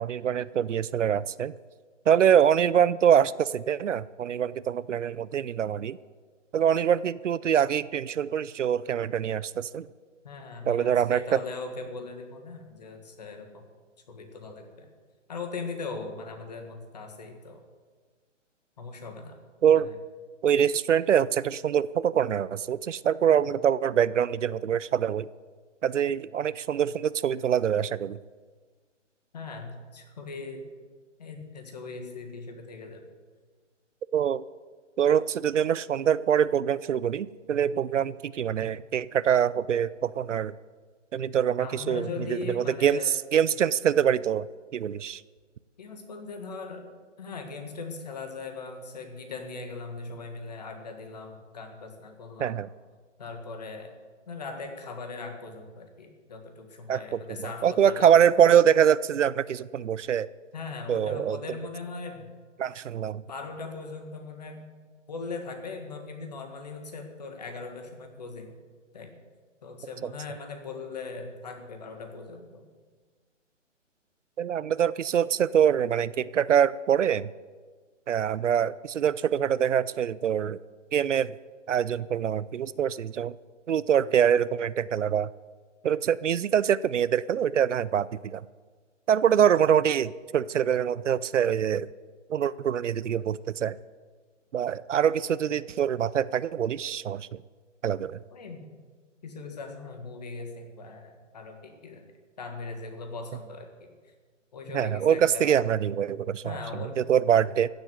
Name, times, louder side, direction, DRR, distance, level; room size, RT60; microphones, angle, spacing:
voice 1, 0.0-1.5 2.1-6.0 6.5-9.9 10.7-11.4 19.6-19.9 20.4-25.3 25.8-28.2 34.1-34.4 35.0-40.5 41.1-44.5 44.7-45.2 52.4-52.7 56.9-60.3 60.9-61.4 62.6-63.2 74.4-77.3 78.1-80.6 80.9-81.3 81.7-83.4 83.7-85.3 85.8-88.4 89.1-91.9 92.3-93.7 94.5-97.3 97.8-98.2 104.7-107.7, right 9 dB, 70° right, 19 dB, 0.6 m, -24 dB
voice 2, 10.2-13.6 14.1-14.9 15.3-17.6 18.8-19.4 19.8-19.9 29.3-30.6 31.2-33.0 41.6-43.1 45.8-52.6 53.2-53.9 54.3-58.1 60.5-62.3 63.3-64.7 65.1-68.6 68.9-69.2 69.6-72.6 98.3-98.7 99.2-102.1 102.4-103.9 104.5-105.6 106.4-107.0, left 4 dB, 35° left, 5 dB, 1.7 m, -39 dB
14.5 x 7.9 x 8.0 m, 1.5 s
hypercardioid pair, 175°, 38 cm